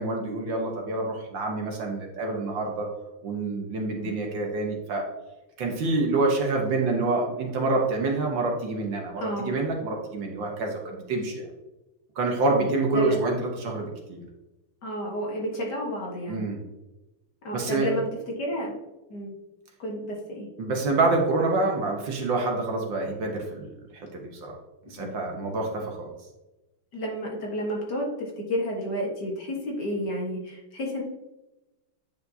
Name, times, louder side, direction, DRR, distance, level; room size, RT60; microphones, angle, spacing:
voice 1, 0.0-2.9 3.2-5.0 5.6-11.4 12.2-14.2 16.3-16.6 17.5-17.9 20.6-23.7 24.1-24.5 24.9-26.1, right 3 dB, 65° right, 0 dB, 1.7 m, -27 dB
voice 2, 9.2-9.6 12.6-13.2 14.8-16.5 17.4-18.0 18.4-18.7 19.1-19.3 19.8-20.5 25.0-25.2 26.9-31.0, equal, 55° left, -2 dB, 1.9 m, -31 dB
9.2 x 5.1 x 2.7 m, 1.0 s
omnidirectional pair, 2.4 m